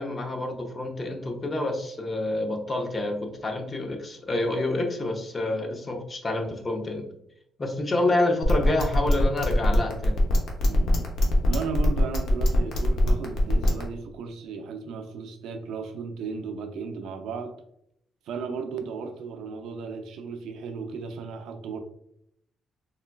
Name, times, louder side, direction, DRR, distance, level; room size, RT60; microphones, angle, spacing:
voice 1, 0.0-7.1 7.6-10.2, left 2 dB, 30° left, 4 dB, 0.6 m, -28 dB
sound 1, 8.4-13.8, left 1 dB, 70° left, 0.7 m, -22 dB
voice 2, 10.6-11.1 11.4-17.5 18.2-21.8, right 5 dB, 85° right, 6 dB, 0.4 m, -35 dB
3.7 x 2.2 x 2.2 m, 0.72 s
cardioid pair, 105°, 0 cm